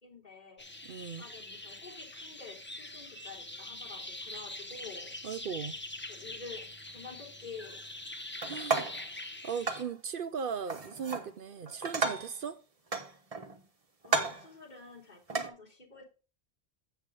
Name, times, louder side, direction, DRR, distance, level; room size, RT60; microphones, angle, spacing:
voice 1, 0.0-5.1 6.1-7.8 14.0-16.0, left 4 dB, 40° left, 3.6 m, -49 dB
sound 1, 0.6-9.8, left 2 dB, 10° left, 0.7 m, -44 dB
voice 2, 0.8-1.3 5.2-5.8 8.4-9.0 9.4-12.6, right 6 dB, 60° right, 0.7 m, -38 dB
sound 2, 8.4-9.1 9.7-9.9 10.7-11.3 11.7-12.4 12.9-13.6 14.0-14.5 15.3-15.5, right 4 dB, 30° right, 1.1 m, -32 dB
8.2 x 7.2 x 3.8 m
omnidirectional pair, 1.2 m